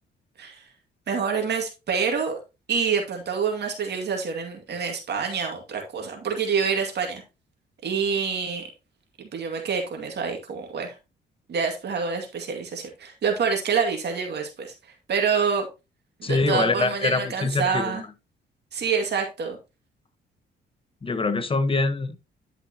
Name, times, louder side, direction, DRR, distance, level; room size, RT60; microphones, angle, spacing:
voice 1, 1.1-2.4 2.7-7.2 7.8-8.7 9.3-10.9 11.5-15.7 16.2-18.0 18.7-19.6, right 6 dB, 60° right, 2.3 m, -27 dB
voice 2, 16.2-18.1 21.0-22.2, left 3 dB, 25° left, 1.1 m, -24 dB
11.0 x 5.8 x 2.9 m
cardioid pair, 90°, 20 cm